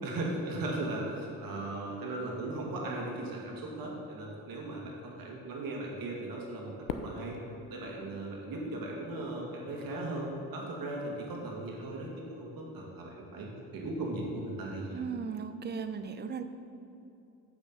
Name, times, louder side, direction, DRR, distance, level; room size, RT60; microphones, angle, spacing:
voice 1, 0.0-7.4 7.7-13.5 13.7-15.0, right 2 dB, 65° right, -1 dB, 2.1 m, -37 dB
Fireworks, 6.9-9.2, left 6 dB, 55° left, 0.7 m, -42 dB
voice 2, 14.9-16.4, right 6 dB, 30° right, 10 dB, 0.5 m, -37 dB
8.3 x 5.9 x 5.5 m, 2.8 s
cardioid pair, 100°, 38 cm